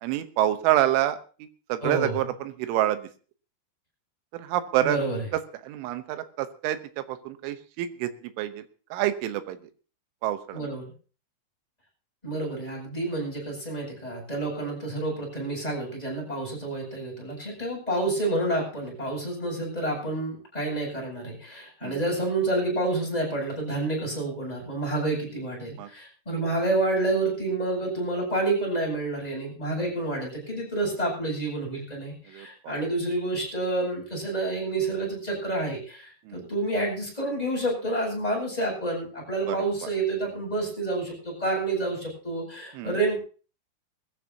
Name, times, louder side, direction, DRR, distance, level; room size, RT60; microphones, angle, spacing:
voice 1, 0.0-1.2 1.7-3.0 4.3-5.0 5.6-8.1 8.4-8.6 8.9-9.6 10.2-10.7 21.8-22.0 25.8-25.9 32.3-32.7 36.3-36.4 39.5-39.6 42.8-42.9, right 13 dB, 85° right, 11 dB, 3.5 m, -27 dB
voice 2, 1.8-2.3 4.8-5.3 10.5-10.9 12.2-43.2, right 2 dB, 10° left, -2 dB, 7.7 m, -29 dB
21.5 x 15.0 x 2.8 m, 0.37 s
omnidirectional pair, 5.5 m